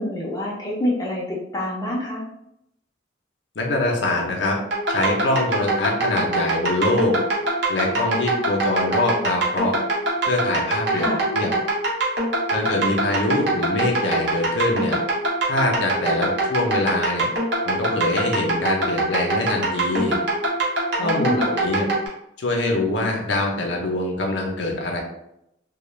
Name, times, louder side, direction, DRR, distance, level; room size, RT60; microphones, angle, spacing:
voice 1, 0.0-2.2 10.9-11.3 21.0-21.6, left 1 dB, 20° left, -4 dB, 0.4 m, -26 dB
voice 2, 3.6-4.6 4.9-7.2 7.7-9.7 10.3-11.5 12.5-15.0 15.5-17.3 17.6-20.2 21.0-21.9 22.4-25.0, left 2 dB, 70° left, 1 dB, 0.6 m, -24 dB
sound 1, 4.7-22.1, right 2 dB, 65° right, 0.7 m, -23 dB
2.3 x 2.1 x 3.1 m, 0.81 s
head